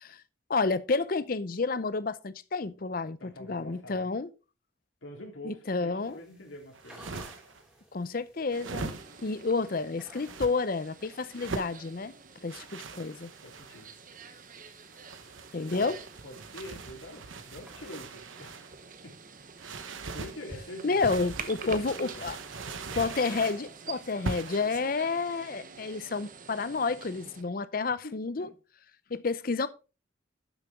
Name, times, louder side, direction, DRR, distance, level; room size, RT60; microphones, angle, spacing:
voice 1, 0.5-4.3 5.4-6.2 7.9-8.9 9.2-12.1 12.4-13.3 15.5-16.0 20.8-22.4 23.0-28.5 29.1-29.7, left 4 dB, 45° left, 0.6 m, -30 dB
voice 2, 3.2-4.1 5.0-7.1 13.4-13.9 15.6-16.0 16.2-18.7 19.0-19.1 19.6-21.1 21.3-22.3 28.0-28.5, left 1 dB, 85° left, 3.3 m, -45 dB
sound 1, 6.0-24.8, equal, 5° right, 2.6 m, -54 dB
sound 2, 6.7-7.6 8.5-9.4 10.1-10.5 11.3-11.8 12.5-13.9 14.9-18.7 19.6-20.4 21.0-23.6 24.2-24.7, right 3 dB, 85° right, 1.0 m, -41 dB
sound 3, 8.5-27.4, right 6 dB, 45° right, 0.9 m, -48 dB
11.5 x 6.8 x 3.6 m
head